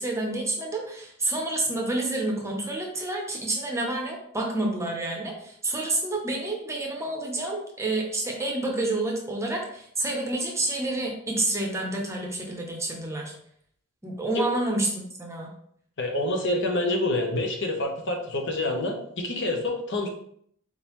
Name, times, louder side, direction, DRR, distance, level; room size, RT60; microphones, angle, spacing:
voice 1, 0.0-13.3 14.0-15.5, right 2 dB, 15° right, 0 dB, 0.7 m, -29 dB
voice 2, 16.0-20.1, left 2 dB, 55° left, 2 dB, 0.8 m, -27 dB
4.2 x 3.7 x 3.0 m, 0.66 s
head